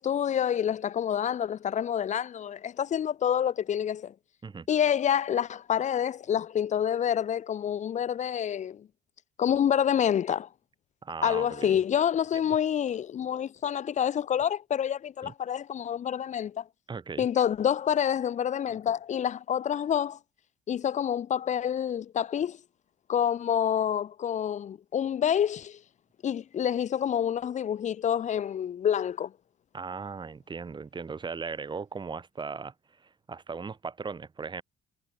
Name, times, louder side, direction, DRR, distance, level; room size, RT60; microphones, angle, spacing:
voice 1, 0.0-4.1 4.7-8.9 9.4-10.5 11.2-16.6 17.2-20.2 20.7-22.6 23.1-25.8 26.2-29.3, left 9 dB, 45° left, 1.2 m, -27 dB
voice 2, 11.0-11.8 15.2-15.3 16.9-17.3 29.7-32.7 33.3-34.6, right 5 dB, 25° right, 3.7 m, -37 dB
cardioid pair, 110°, 17 cm